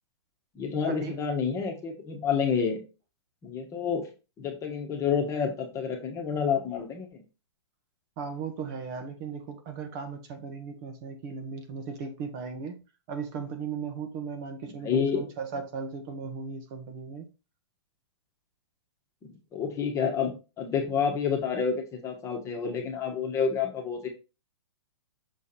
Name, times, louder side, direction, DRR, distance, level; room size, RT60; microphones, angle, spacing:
voice 1, 0.5-2.8 3.4-4.1 4.4-7.2 14.8-15.2 19.2-24.1, left 6 dB, 20° left, 1.4 m, -29 dB
voice 2, 8.2-12.8 13.1-17.2, right 5 dB, 40° right, 1.3 m, -37 dB
6.5 x 3.6 x 4.3 m
hypercardioid pair, 140°, 15 cm